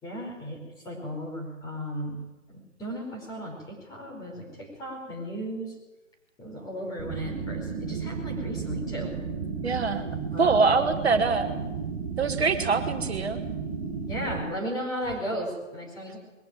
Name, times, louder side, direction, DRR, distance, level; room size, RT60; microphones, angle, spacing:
voice 1, 0.0-2.2 2.5-5.7 6.4-9.1 10.3-10.5 10.9-11.0 14.1-16.2, equal, 10° left, -2 dB, 5.0 m, -35 dB
sound 1, 7.0-14.4, right 5 dB, 30° right, 5.5 m, -33 dB
voice 2, 9.6-10.0 10.4-11.5 12.2-13.4, right 4 dB, 55° right, 6 dB, 1.6 m, -24 dB
21.5 x 16.0 x 9.2 m, 1.1 s
figure-of-eight pair, 145°, 39 cm